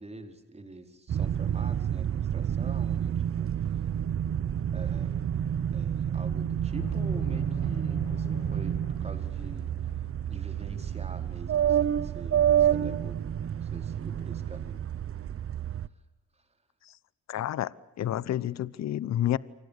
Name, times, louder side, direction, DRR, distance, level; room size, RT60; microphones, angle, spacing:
voice 1, 0.0-3.9 4.3-4.4 4.7-5.2 5.7-14.8 16.3-16.5, right 2 dB, 20° right, 6 dB, 4.7 m, -46 dB
sound 1, 1.1-15.9, right 9 dB, 45° right, 0.9 m, -29 dB
sound 2, 6.7-11.5, left 5 dB, 85° left, 7.3 m, -45 dB
voice 2, 17.3-19.4, left 12 dB, 60° left, 19 dB, 1.0 m, -30 dB
29.0 x 25.0 x 6.8 m, 0.92 s
cardioid pair, 90°, 30 cm